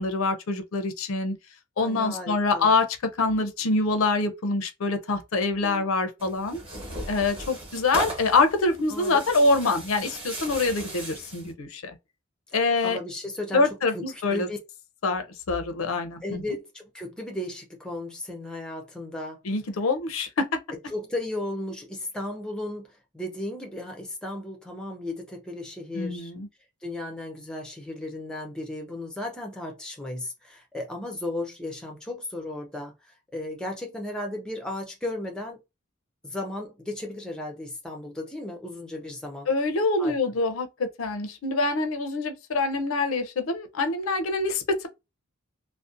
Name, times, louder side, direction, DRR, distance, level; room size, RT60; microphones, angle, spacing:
voice 1, 0.0-1.4 1.8-2.9 3.2-6.6 7.1-12.0 12.5-13.0 13.5-14.5 15.0-16.4 19.4-20.5 25.9-26.5 39.5-44.9, left 3 dB, 80° left, 0.5 m, -25 dB
voice 2, 1.8-2.7 5.6-5.9 8.9-9.5 12.8-14.6 16.2-19.4 20.9-26.3 26.8-35.6 36.2-39.5 40.0-40.1, left 1 dB, 5° left, 0.4 m, -35 dB
Tearing, 6.2-11.5, right 1 dB, 25° right, 0.9 m, -37 dB
2.5 x 2.0 x 2.4 m
head